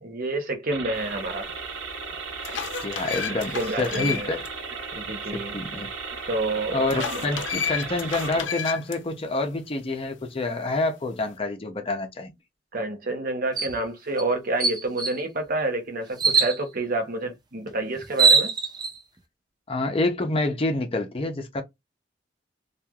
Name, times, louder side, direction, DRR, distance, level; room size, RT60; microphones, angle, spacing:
voice 1, 0.0-1.5 3.5-4.3 4.9-5.6 6.3-7.2 12.7-18.5, right 2 dB, 50° right, 0.7 m, -28 dB
sound 1, 0.7-8.4, right 5 dB, 85° right, 0.7 m, -35 dB
sound 2, 1.5-1.6 2.1-4.5 4.8-4.9 6.9-9.0, left 8 dB, 80° left, 0.5 m, -32 dB
voice 2, 2.8-4.5 5.3-5.9 6.7-12.3 19.7-21.6, left 2 dB, 30° left, 0.6 m, -27 dB
sound 3, 13.6-13.8 14.2-14.3 14.6-15.2 16.2-16.6 17.7-17.8 18.0-18.9, right 5 dB, 20° right, 0.5 m, -21 dB
3.1 x 2.4 x 2.3 m
head